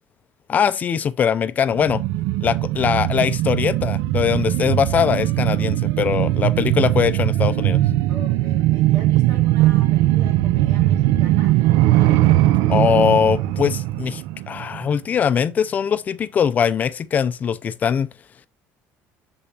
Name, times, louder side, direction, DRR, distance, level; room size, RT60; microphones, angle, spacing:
voice 1, 0.5-2.0 2.4-7.8 12.7-18.1, left 7 dB, 30° left, 0.4 m, -21 dB
sound 1, 1.7-14.9 15.3-15.4, right 15 dB, 85° right, 0.4 m, -19 dB
voice 2, 8.1-11.6, right 2 dB, 70° right, 3.6 m, -41 dB
6.9 x 5.1 x 2.8 m
cardioid pair, 165°, 6 cm